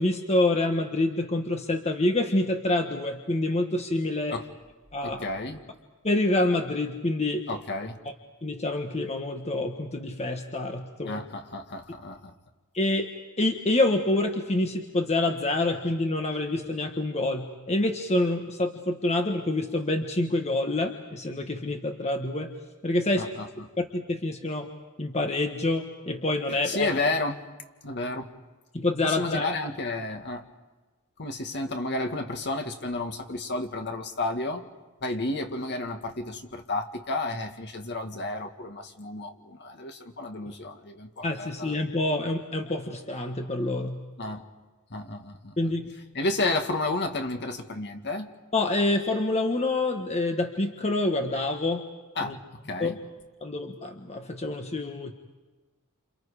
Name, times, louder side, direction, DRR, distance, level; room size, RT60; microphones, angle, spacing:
voice 1, 0.0-4.4 4.9-5.2 6.0-7.5 8.0-8.1 8.4-11.2 12.7-13.1 13.4-22.5 22.8-23.3 23.8-24.7 25.0-26.9 28.7-29.5 41.2-44.0 45.6-45.9 48.5-51.8 52.2-52.4 52.8-52.9 53.4-55.1, left 2 dB, 30° left, 4 dB, 1.4 m, -27 dB
voice 2, 5.0-5.6 7.5-8.0 11.0-12.2 23.2-23.5 26.7-27.4 27.8-28.3 29.0-30.4 31.2-34.7 35.0-41.7 44.2-44.4 44.9-45.5 46.2-48.3 52.2-52.4 52.7-53.0, left 2 dB, 55° left, 5 dB, 2.0 m, -31 dB
29.0 x 28.5 x 5.0 m, 1.3 s
head